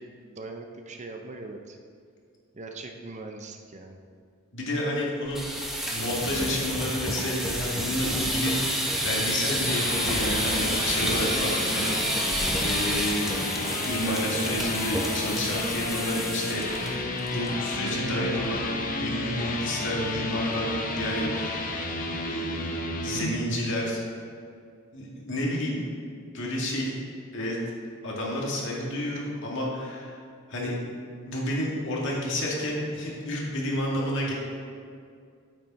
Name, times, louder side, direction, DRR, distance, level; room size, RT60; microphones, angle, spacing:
voice 1, 0.0-1.8 2.5-4.0, right 3 dB, 35° right, 4 dB, 0.7 m, -41 dB
voice 2, 4.5-5.4 5.9-11.9 12.6-13.3 13.9-18.7 19.0-21.8 22.2-22.8 23.0-24.0 24.9-25.8 26.3-26.9 27.3-27.6 28.0-30.2 30.5-30.8 31.2-34.3, left 1 dB, 60° left, -3 dB, 2.1 m, -30 dB
sound 1, 5.2-16.9 17.2-17.5 17.8-17.9 18.3-18.7, equal, ahead, 1.2 m, -29 dB
sound 2, 9.5-23.3, left 2 dB, 40° left, 0.9 m, -31 dB
9.0 x 8.7 x 4.2 m, 2.2 s
head